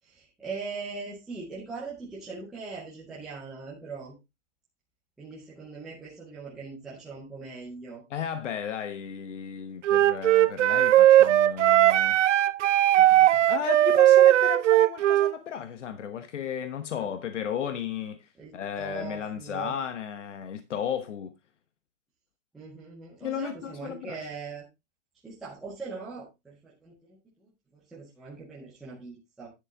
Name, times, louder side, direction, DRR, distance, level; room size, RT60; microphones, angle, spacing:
voice 1, 0.0-4.1 5.2-8.0 17.0-17.1 18.4-19.8 22.5-24.6 25.2-29.5, right 4 dB, ahead, 0.6 m, -41 dB
voice 2, 8.1-12.2 13.0-21.3 23.2-24.2, left 8 dB, 80° left, 1.2 m, -34 dB
Wind instrument woodwind instrument, 9.8-15.3, right 13 dB, 85° right, 0.6 m, -19 dB
10.5 x 7.0 x 3.7 m
hypercardioid pair, 180°, 36 cm